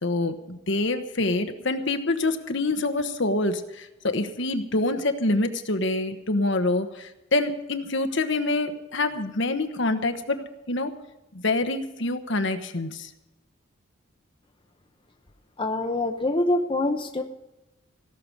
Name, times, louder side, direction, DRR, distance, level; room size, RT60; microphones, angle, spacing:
voice 1, 0.0-10.9 11.3-13.1, left 2 dB, 60° left, 7 dB, 1.2 m, -26 dB
voice 2, 15.6-17.2, left 2 dB, 25° left, 5 dB, 0.8 m, -25 dB
17.0 x 6.9 x 9.7 m, 1.0 s
head